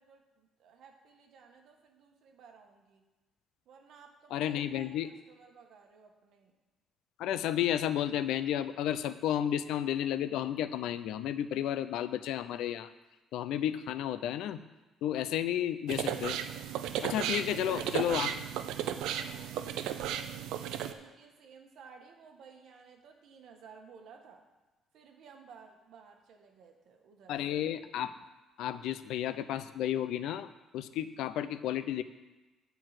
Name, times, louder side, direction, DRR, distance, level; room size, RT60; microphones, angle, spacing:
voice 1, 0.0-3.0 3.7-6.5 17.4-18.2 18.9-24.4 24.9-27.6, right 5 dB, 60° right, 3 dB, 1.4 m, -55 dB
voice 2, 4.3-5.1 7.2-12.9 13.3-14.6 15.0-16.4 17.0-18.3 27.3-28.1 28.6-32.0, left 11 dB, 80° left, 13 dB, 0.5 m, -32 dB
sound 1, 15.9-20.9, right 10 dB, 85° right, 0.5 m, -35 dB
9.8 x 4.6 x 7.7 m, 1.1 s
cardioid pair, 160°, 0 cm